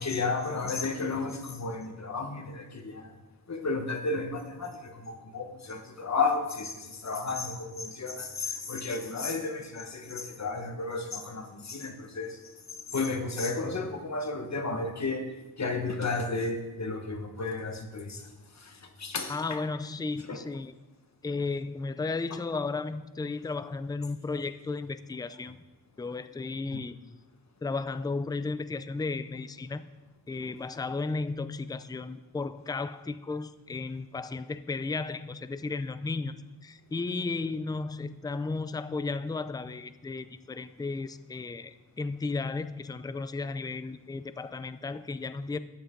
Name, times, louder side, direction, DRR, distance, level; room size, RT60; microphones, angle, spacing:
voice 1, 0.0-3.1 3.5-12.4 12.9-15.2 15.6-18.2 18.6-18.7 19.0-19.3 20.3-20.4 26.7-26.8, left 3 dB, 45° left, 4 dB, 1.3 m, -32 dB
voice 2, 19.3-20.7 21.2-25.6 26.0-27.0 27.6-29.8 30.3-45.6, left 3 dB, 10° left, 13 dB, 0.4 m, -34 dB
13.0 x 8.8 x 3.8 m, 1.1 s
wide cardioid pair, 95°, 39 cm